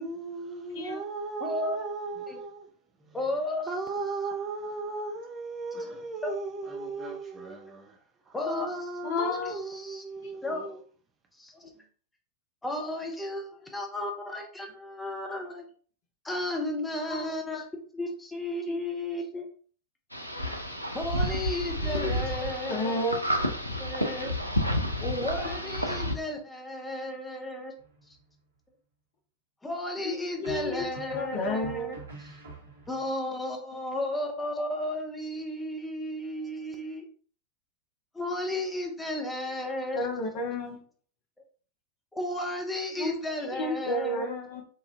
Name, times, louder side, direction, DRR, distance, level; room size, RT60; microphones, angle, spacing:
voice 1, 0.0-2.7 3.0-3.2 3.7-8.0 8.3-10.8, right 3 dB, 20° right, 0.6 m, -36 dB
voice 2, 1.4-1.8 2.3-2.4 3.1-3.7 6.2-6.3 8.3-8.9 9.7-10.0 10.4-10.6 11.3-11.7 12.6-15.6 16.2-17.6 17.9-19.5 20.9-23.0 23.8-24.4 25.0-27.7 29.6-32.4 32.9-37.1 38.1-40.0 42.1-44.3, left 1 dB, 10° left, 0.9 m, -33 dB
voice 3, 9.0-9.6 10.2-10.3 17.1-17.6 18.7-18.8 21.6-22.1 22.4-23.2 25.4-25.5 30.0-32.0 39.9-40.8 42.9-43.2 43.5-44.6, left 2 dB, 45° left, 1.0 m, -32 dB
sound 1, 20.1-26.1, equal, 90° left, 0.5 m, -30 dB
sound 2, 27.8-28.4 30.4-33.1, right 3 dB, 75° right, 1.1 m, -45 dB
4.0 x 2.5 x 2.6 m
figure-of-eight pair, 90°, 0 cm